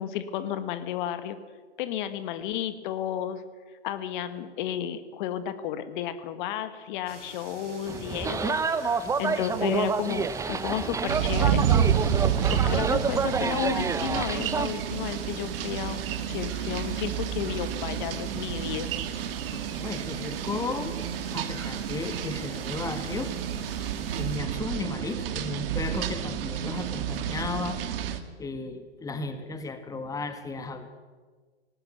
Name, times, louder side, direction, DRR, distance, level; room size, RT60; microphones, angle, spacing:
voice 1, 0.0-1.4 1.8-3.4 3.8-8.6 9.2-11.6 12.4-18.9, left 10 dB, 45° left, 11 dB, 1.7 m, -32 dB
sound 1, 7.1-24.4, right 3 dB, 85° right, 3.4 m, -47 dB
sound 2, 7.9-14.7, right 5 dB, 10° right, 0.9 m, -28 dB
sound 3, 11.1-28.2, right 9 dB, 55° right, 2.1 m, -30 dB
voice 2, 19.5-21.0 21.3-23.3 23.9-27.8 28.4-30.9, left 3 dB, 10° left, 9 dB, 1.6 m, -34 dB
19.5 x 18.5 x 8.4 m, 1.4 s
figure-of-eight pair, 110°, 35 cm